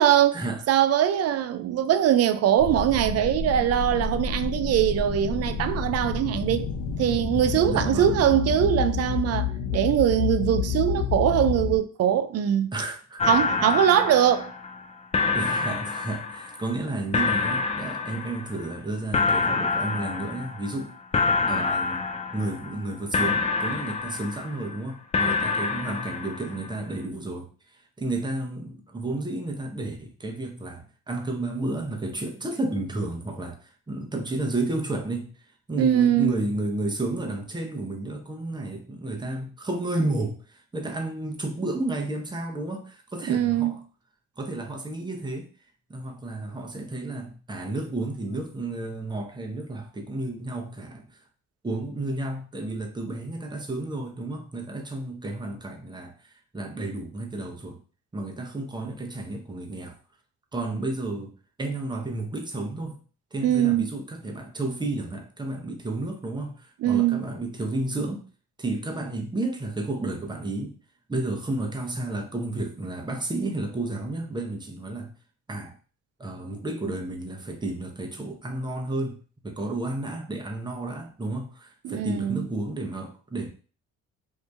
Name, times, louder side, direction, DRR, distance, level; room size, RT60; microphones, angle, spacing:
voice 1, 0.0-0.4 0.7-6.7 7.0-12.7 13.3-14.5 35.8-36.4 43.3-43.8 63.4-63.9 66.8-67.2 81.8-82.5, right 10 dB, 55° right, 0.4 m, -22 dB
sound 1, 2.6-11.8, left 6 dB, 70° left, 0.7 m, -29 dB
voice 2, 7.6-8.1 12.7-13.2 15.3-21.0 21.5-22.0 22.3-35.3 35.7-43.8 44.4-45.5 45.9-51.2 51.6-57.8 58.1-60.0 60.5-61.3 61.6-63.0 63.3-68.2 68.6-70.8 71.1-75.1 75.5-75.7 76.2-83.5, right 2 dB, 15° right, 0.8 m, -32 dB
sound 2, 13.2-14.9 15.1-16.8 17.1-18.8 19.1-20.9 21.1-22.9 23.1-24.8 25.1-26.8, left 4 dB, 20° left, 0.4 m, -27 dB
2.7 x 2.7 x 3.4 m
cardioid pair, 90°, 30 cm